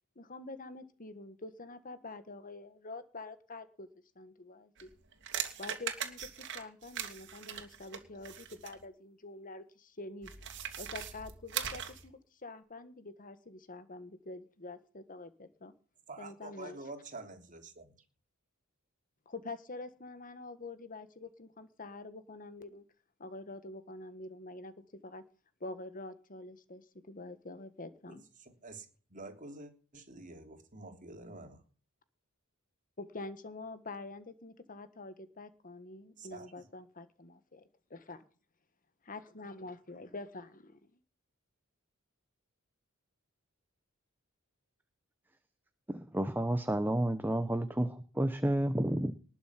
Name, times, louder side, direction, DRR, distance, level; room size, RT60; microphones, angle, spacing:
voice 1, 0.1-3.9 4.1-4.9 5.6-10.3 10.8-15.7 16.2-16.8 19.2-22.8 23.2-25.2 25.6-28.2 33.0-38.2 39.1-40.8, left 2 dB, 40° left, 1.5 m, -46 dB
sound 1, 4.8-8.8 10.2-12.1, right 9 dB, 60° right, 2.6 m, -40 dB
voice 2, 16.1-18.0 28.0-31.6 36.2-36.7, right 2 dB, 40° right, 3.3 m, -48 dB
voice 3, 45.9-49.1, right 1 dB, 10° right, 0.9 m, -31 dB
20.0 x 7.2 x 5.9 m
head